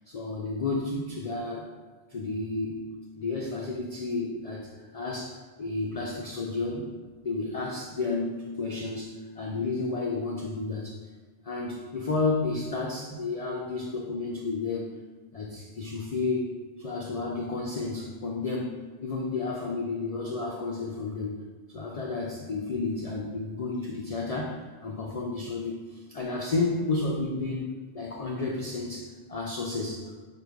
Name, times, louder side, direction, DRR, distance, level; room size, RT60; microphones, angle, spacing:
voice 1, 0.1-1.7 2.1-2.9 3.2-6.9 7.2-11.0 11.4-14.9 15.3-21.4 21.7-27.7 27.9-30.1, left 3 dB, 80° left, -2 dB, 0.3 m, -31 dB
4.8 x 2.3 x 4.7 m, 1.4 s
omnidirectional pair, 1.3 m